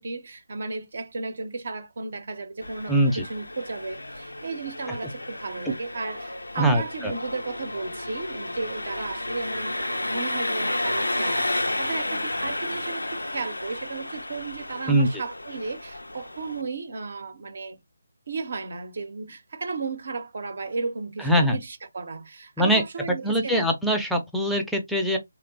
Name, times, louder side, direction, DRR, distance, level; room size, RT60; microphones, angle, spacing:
voice 1, 0.0-17.8 18.3-23.7, right 3 dB, 55° right, 0.6 m, -34 dB
Engine, 2.6-16.6, left 1 dB, 85° left, 0.4 m, -32 dB
voice 2, 2.9-3.2 5.7-5.8 6.6-7.1 14.9-15.1 21.2-21.6 22.6-22.8 23.2-25.2, equal, ahead, 0.4 m, -22 dB
2.8 x 2.0 x 2.6 m
figure-of-eight pair, 155°, 0 cm